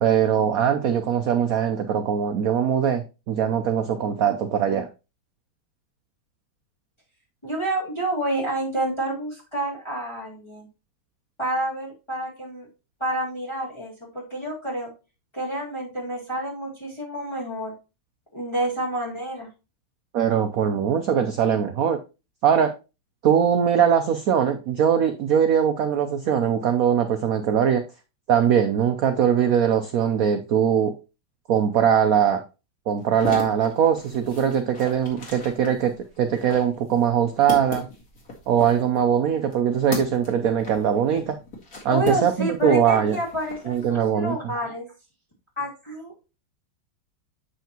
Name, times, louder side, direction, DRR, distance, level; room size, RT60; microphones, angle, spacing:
voice 1, 0.0-4.9 20.1-22.0 22.4-22.7 23.2-27.8 28.3-30.9 31.5-32.4 32.9-35.9 36.2-37.9 38.5-41.4 41.8-43.2 43.7-44.4, right 8 dB, 75° right, 8 dB, 0.8 m, -21 dB
voice 2, 7.4-10.7 11.4-12.7 13.0-14.9 15.3-17.7 18.3-19.5 41.9-44.9 45.6-46.1, right 1 dB, 15° left, -4 dB, 2.0 m, -29 dB
sound 1, 33.0-42.7 43.0-43.8, left 2 dB, 45° left, 2.4 m, -37 dB
8.1 x 5.7 x 2.9 m, 0.30 s
omnidirectional pair, 2.2 m